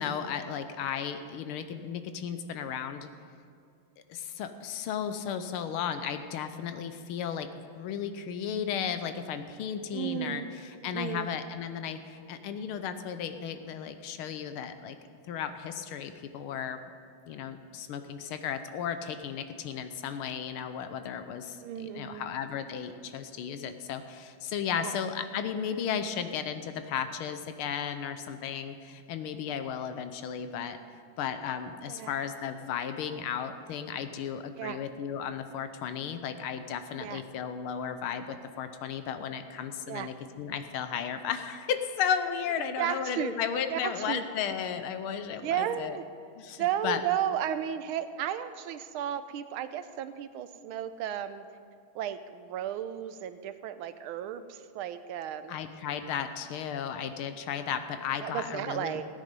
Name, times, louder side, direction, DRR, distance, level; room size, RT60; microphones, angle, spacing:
voice 1, 0.0-3.1 4.1-7.5 7.8-15.0 15.3-16.8 17.3-30.8 31.2-46.0 46.4-47.0 55.5-59.0, left 8 dB, 80° left, 9 dB, 1.6 m, -34 dB
voice 2, 9.9-10.5 10.9-11.3 21.6-22.3 24.8-24.9 31.9-32.1 34.6-34.8 37.0-37.2 39.9-40.1 42.8-43.3 43.7-44.2 45.4-46.1 46.6-51.5 51.9-55.6 58.2-59.0, right 10 dB, 80° right, 11 dB, 1.4 m, -34 dB
16.0 x 9.2 x 5.3 m, 2.3 s
omnidirectional pair, 2.4 m